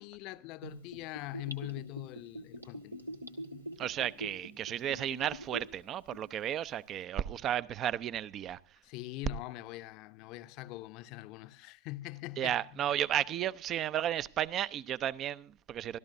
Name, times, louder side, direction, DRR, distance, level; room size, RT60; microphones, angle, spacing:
voice 1, 0.0-3.0 8.8-12.8, left 18 dB, 40° left, 0.7 m, -43 dB
Gurgling / Bathtub (filling or washing), 0.6-5.8 6.1-6.2, equal, 85° right, 1.7 m, -43 dB
voice 2, 3.8-8.6 12.4-16.0, right 11 dB, 30° right, 0.6 m, -33 dB
26.0 x 13.5 x 2.6 m
figure-of-eight pair, 90°, 0 cm